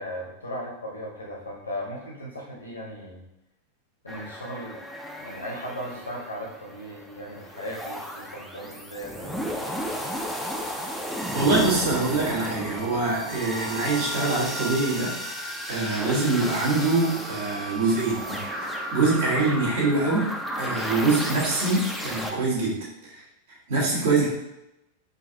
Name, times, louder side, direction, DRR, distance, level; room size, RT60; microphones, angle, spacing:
voice 1, 0.0-3.3 4.0-4.8 5.2-9.5, equal, 75° left, -2 dB, 0.9 m, -37 dB
sound 1, 4.1-22.3, equal, ahead, 0.4 m, -34 dB
voice 2, 11.3-18.4 18.9-20.3 20.6-22.8 23.1-23.2 23.7-24.3, right 3 dB, 55° right, -5 dB, 1.3 m, -24 dB
3.8 x 2.5 x 2.7 m, 0.88 s
figure-of-eight pair, 90°, 0 cm